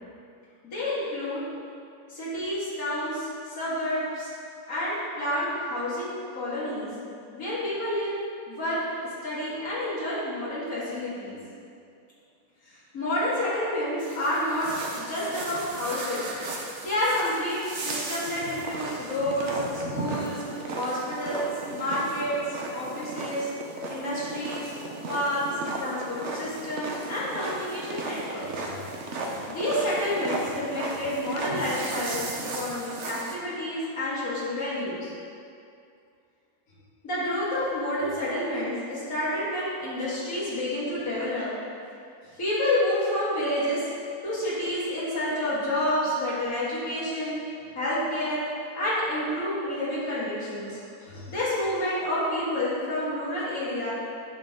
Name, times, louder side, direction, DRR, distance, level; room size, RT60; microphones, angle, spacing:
voice 1, 0.6-1.4 2.1-4.3 4.7-6.9 7.3-8.2 8.5-11.4 12.7-14.7 15.0-16.3 16.8-20.4 20.8-23.5 23.9-24.7 25.1-25.5 25.8-28.8 29.2-35.1 37.0-41.5 42.3-43.8 44.2-48.4 48.7-53.9, left 1 dB, 80° left, -9 dB, 2.4 m, -29 dB
sound 1, 14.0-33.3, right 2 dB, 60° right, 1.1 m, -35 dB
10.0 x 6.4 x 3.7 m, 2.4 s
omnidirectional pair, 1.5 m